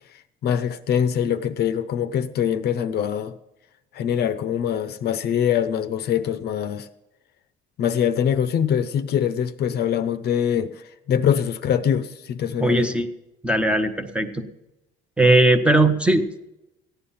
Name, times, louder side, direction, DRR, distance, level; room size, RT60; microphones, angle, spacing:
voice 1, 0.4-3.3 3.9-6.9 7.8-13.0, left 8 dB, 50° left, 0.7 m, -23 dB
voice 2, 12.6-13.1 13.4-14.4 15.2-16.4, right 2 dB, 5° right, 0.8 m, -19 dB
15.0 x 10.0 x 5.6 m
cardioid pair, 160°, 21 cm